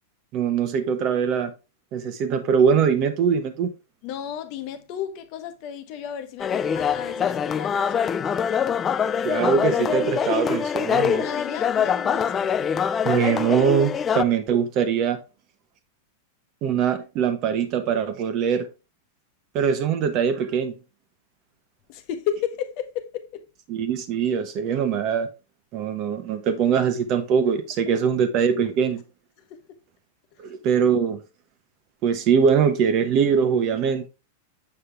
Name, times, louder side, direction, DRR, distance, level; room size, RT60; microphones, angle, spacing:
voice 1, 0.3-1.5 1.9-3.7 9.2-11.2 13.0-15.2 16.6-18.7 19.5-20.7 23.7-25.3 25.7-29.0 30.4-31.2 32.0-34.1, right 7 dB, 40° right, 1.0 m, -22 dB
voice 2, 4.0-8.2 11.1-12.5 21.9-23.4 29.5-29.8, left 9 dB, 45° left, 1.0 m, -33 dB
sound 1, 6.4-14.2, left 7 dB, 20° left, 0.3 m, -24 dB
7.1 x 5.5 x 3.3 m
supercardioid pair, 145°, 0 cm